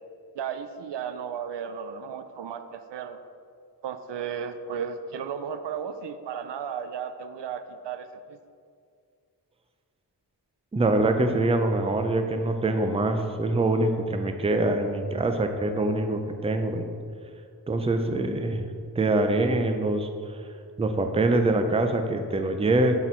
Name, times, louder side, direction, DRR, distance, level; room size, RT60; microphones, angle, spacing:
voice 1, 0.4-3.2 3.8-8.4, right 7 dB, 90° right, 10 dB, 0.5 m, -34 dB
voice 2, 10.7-16.9 17.7-18.7 19.0-20.1 20.8-22.9, right 2 dB, 15° right, 6 dB, 0.4 m, -24 dB
8.0 x 4.2 x 4.4 m, 2.2 s
wide cardioid pair, 110°, 41 cm